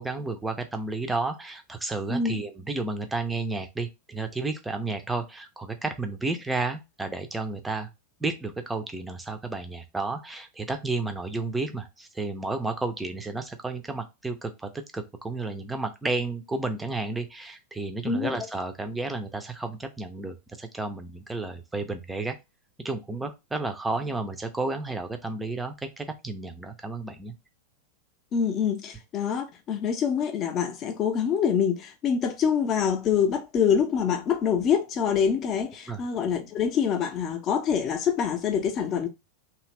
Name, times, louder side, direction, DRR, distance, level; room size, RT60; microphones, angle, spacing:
voice 1, 0.0-7.9 8.2-22.4 22.8-27.3 35.9-36.0, right 3 dB, 10° right, 0.5 m, -32 dB
voice 2, 2.1-2.4 18.0-18.4 28.3-39.1, left 7 dB, 30° left, 0.6 m, -25 dB
2.8 x 2.4 x 3.1 m
figure-of-eight pair, 90°, 0 cm